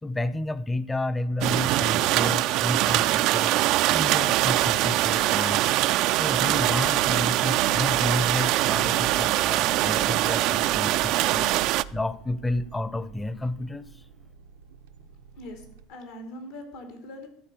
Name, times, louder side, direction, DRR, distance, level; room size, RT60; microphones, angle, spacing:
voice 1, 0.0-3.6 3.9-5.7 6.1-11.5 11.9-13.9, left 2 dB, 15° left, 16 dB, 0.7 m, -31 dB
sound 1, 1.4-11.8, right 16 dB, 65° right, 0.3 m, -23 dB
sound 2, 5.0-15.8, right 6 dB, 90° right, 0.7 m, -45 dB
voice 2, 15.3-17.3, left 1 dB, 80° left, 4 dB, 2.8 m, -42 dB
12.5 x 4.2 x 8.3 m, 0.70 s
hypercardioid pair, 85°, 0 cm